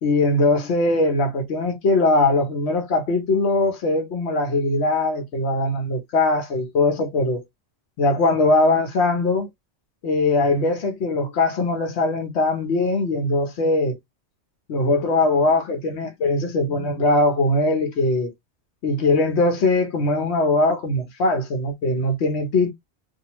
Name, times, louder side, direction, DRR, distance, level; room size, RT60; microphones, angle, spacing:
voice 1, 0.0-7.4 8.0-9.5 10.0-14.0 14.7-18.3 18.8-22.7, left 2 dB, 75° left, 1.1 m, -21 dB
2.7 x 2.4 x 2.9 m
omnidirectional pair, 1.1 m